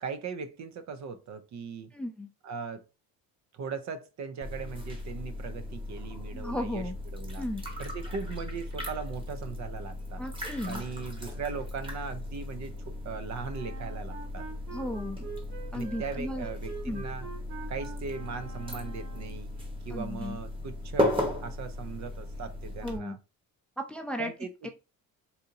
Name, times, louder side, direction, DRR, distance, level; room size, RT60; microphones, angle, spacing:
voice 1, 0.0-1.9 2.4-2.8 3.5-6.8 7.1-7.4 7.8-10.2 10.7-14.4 15.7-17.3 17.7-19.5 19.8-23.2 24.2-24.5, right 5 dB, 55° right, 0.5 m, -39 dB
voice 2, 1.9-2.3 6.3-7.0 7.3-7.6 10.2-10.8 14.7-15.3 15.7-16.5 16.8-17.0 19.9-20.4 22.8-23.2 23.8-24.3 24.6-24.7, left 1 dB, 5° left, 0.5 m, -35 dB
sound 1, 4.4-23.0, left 1 dB, 15° right, 1.0 m, -36 dB
Wind instrument woodwind instrument, 13.5-19.4, right 6 dB, 70° right, 1.5 m, -45 dB
4.1 x 2.5 x 2.7 m
cardioid pair, 110°, 33 cm